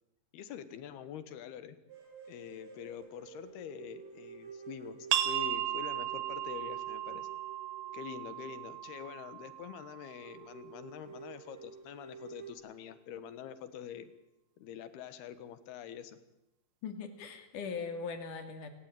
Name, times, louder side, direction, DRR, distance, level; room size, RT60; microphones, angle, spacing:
voice 1, 0.3-1.8 2.3-5.0 5.3-7.3 7.9-14.1 14.6-16.2, left 9 dB, 75° left, 13 dB, 3.4 m, -45 dB
sound 1, 1.9-9.2 9.5-9.6 9.9-10.0 10.2-12.5, right 6 dB, 55° right, 6.4 m, -51 dB
sound 2, 5.1-10.5, right 12 dB, 85° right, 3.3 m, -36 dB
voice 2, 16.8-18.7, left 5 dB, 55° left, 8 dB, 3.8 m, -40 dB
28.5 x 18.0 x 9.2 m, 0.88 s
omnidirectional pair, 4.6 m